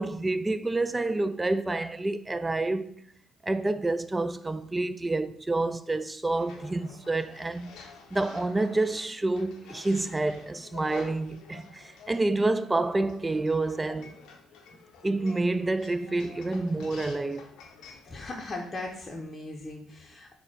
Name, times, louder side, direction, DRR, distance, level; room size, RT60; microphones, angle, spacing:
voice 1, 0.0-2.9 3.4-7.7 8.1-14.1 15.0-17.5, right 2 dB, 20° right, 0.3 m, -28 dB
sound 1, 6.3-19.0, left 5 dB, 75° left, 0.6 m, -50 dB
voice 2, 18.0-20.4, left 2 dB, 30° left, 0.7 m, -38 dB
4.0 x 2.2 x 4.4 m
hypercardioid pair, 60°, 0 cm